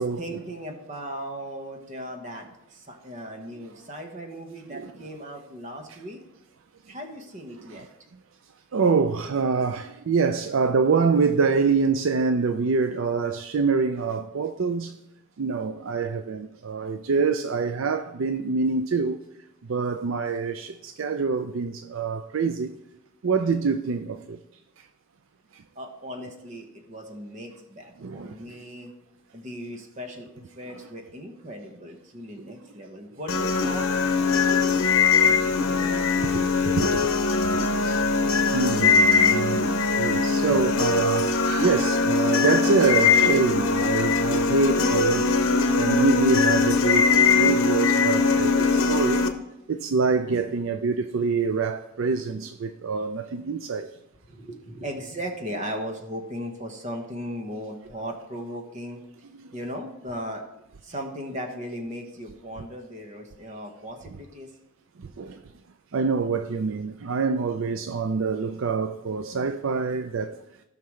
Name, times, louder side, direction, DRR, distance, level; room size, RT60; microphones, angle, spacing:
voice 1, 0.0-6.2 6.9-7.9 25.7-28.9 29.3-34.8 35.2-36.6 54.3-59.0 59.5-60.4 60.8-64.5, equal, 35° right, 1.3 m, -37 dB
voice 2, 7.5-7.9 8.7-15.0 15.4-19.2 19.6-22.7 23.2-24.4 24.8-24.9 25.5-25.6 28.0-28.6 30.7-30.9 36.3-36.4 36.7-37.1 37.8-38.2 38.5-49.3 49.7-54.0 59.4-59.5 65.0-65.5 65.9-70.4, right 4 dB, 70° right, 0.4 m, -26 dB
sound 1, 33.3-49.3, left 4 dB, 85° left, 0.9 m, -21 dB
16.5 x 5.8 x 3.2 m
head